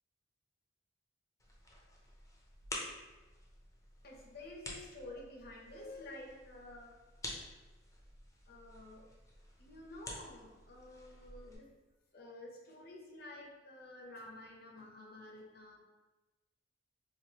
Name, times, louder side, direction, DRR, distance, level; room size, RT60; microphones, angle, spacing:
sound 1, 1.4-11.6, left 1 dB, 15° left, 0.5 m, -50 dB
voice 1, 4.0-7.0 8.5-9.1 9.6-11.7 12.1-15.8, left 1 dB, 55° left, -1 dB, 0.7 m, -51 dB
4.2 x 2.4 x 2.9 m, 1.1 s
head